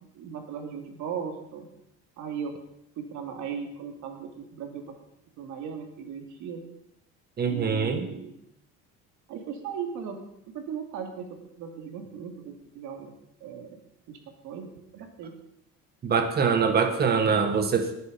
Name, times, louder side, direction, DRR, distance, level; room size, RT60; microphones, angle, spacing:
voice 1, 0.1-1.7 2.2-2.5 3.0-4.9 5.4-6.6 7.4-8.4 9.3-10.2 10.5-11.3 11.6-13.1 13.4-13.8 14.1-14.2 14.4-15.3, right 7 dB, 70° right, 4 dB, 2.8 m, -37 dB
voice 2, 7.4-8.1 16.0-17.9, right 5 dB, 30° right, 7 dB, 1.8 m, -24 dB
19.0 x 9.5 x 5.3 m, 0.80 s
cardioid pair, 155°, 31 cm